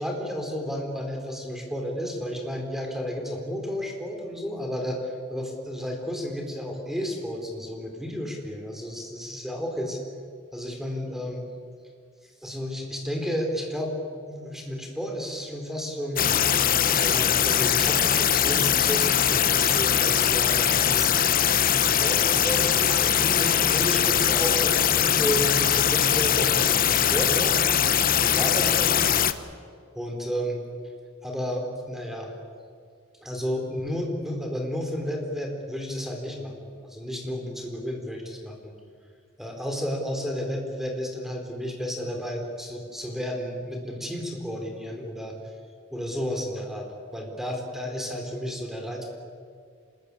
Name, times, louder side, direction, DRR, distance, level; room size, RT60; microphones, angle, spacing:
voice 1, 0.0-10.0 10.5-11.4 12.4-13.9 14.2-16.3 16.9-21.1 21.7-27.6 28.2-29.1 29.9-30.6 31.2-32.3 33.2-38.7 39.4-45.4 45.9-49.1, equal, ahead, 2 dB, 4.3 m, -32 dB
sound 1, 16.2-29.3, left 9 dB, 45° left, 1.0 m, -21 dB
26.5 x 21.0 x 8.5 m, 2.1 s
head